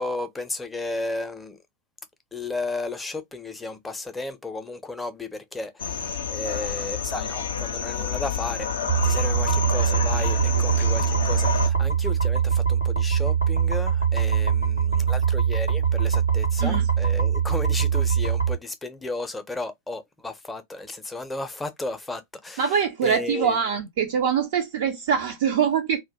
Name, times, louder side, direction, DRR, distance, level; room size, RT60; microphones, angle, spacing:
voice 1, 0.0-1.6 2.3-8.7 9.0-22.8 23.0-23.6, left 2 dB, 10° left, 0.5 m, -34 dB
sound 1, 5.8-11.7, left 7 dB, 65° left, 0.4 m, -29 dB
sound 2, 8.9-18.5, right 7 dB, 90° right, 0.9 m, -22 dB
voice 2, 22.6-26.0, right 7 dB, 55° right, 0.3 m, -24 dB
2.1 x 2.1 x 2.7 m
figure-of-eight pair, 90°, 0 cm